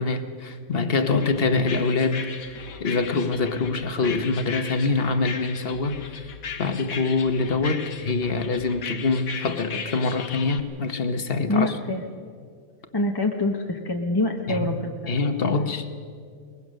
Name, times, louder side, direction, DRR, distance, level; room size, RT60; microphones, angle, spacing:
voice 1, 0.0-6.3 6.6-11.7 14.5-14.7 15.1-15.9, left 3 dB, 45° left, 9 dB, 1.2 m, -25 dB
sound 1, 1.1-10.6, left 6 dB, 90° left, 1.6 m, -37 dB
voice 2, 11.5-12.0 12.9-15.1, left 2 dB, 20° left, 2 dB, 0.9 m, -25 dB
22.5 x 20.5 x 6.4 m, 2.2 s
omnidirectional pair, 1.4 m